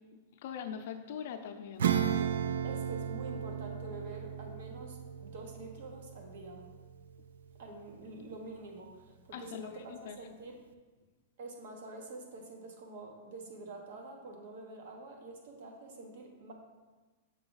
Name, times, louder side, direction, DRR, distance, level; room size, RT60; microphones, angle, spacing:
voice 1, 0.3-1.9 9.3-10.2, left 8 dB, 55° left, 7 dB, 0.6 m, -42 dB
Acoustic guitar / Strum, 1.8-7.8, right 8 dB, 85° right, 0.4 m, -35 dB
voice 2, 2.6-6.7 7.6-10.6 11.4-16.5, right 2 dB, 60° right, 2 dB, 1.3 m, -47 dB
6.8 x 4.8 x 4.0 m, 1.3 s
supercardioid pair, 160°, 0 cm